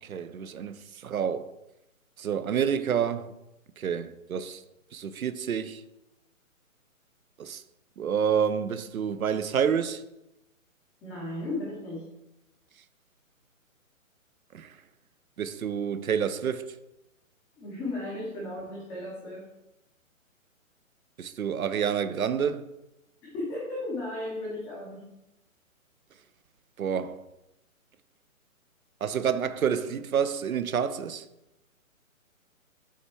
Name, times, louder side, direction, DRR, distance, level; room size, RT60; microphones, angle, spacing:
voice 1, 0.0-1.5 2.2-3.3 3.8-4.6 4.9-5.8 7.4-7.6 8.0-10.0 14.5-14.8 15.4-16.8 21.2-22.7 26.8-27.2 29.0-31.2, right 7 dB, 90° right, 0.7 m, -28 dB
voice 2, 11.0-12.1 17.6-19.5 23.2-25.1, left 2 dB, 5° left, 0.5 m, -35 dB
7.3 x 3.4 x 4.4 m
hypercardioid pair, 145°, 41 cm